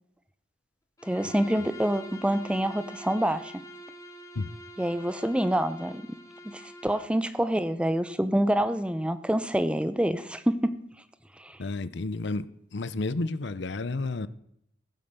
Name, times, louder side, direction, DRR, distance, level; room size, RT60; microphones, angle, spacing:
Bowed string instrument, 1.0-7.2, equal, 15° left, 1.7 m, -45 dB
voice 1, 1.0-3.5 4.8-6.0 6.4-10.8 11.4-11.6, right 1 dB, 5° right, 13 dB, 0.7 m, -27 dB
voice 2, 11.6-12.5 12.7-14.3, left 3 dB, 60° left, 16 dB, 0.7 m, -31 dB
15.5 x 8.9 x 6.7 m, 0.74 s
head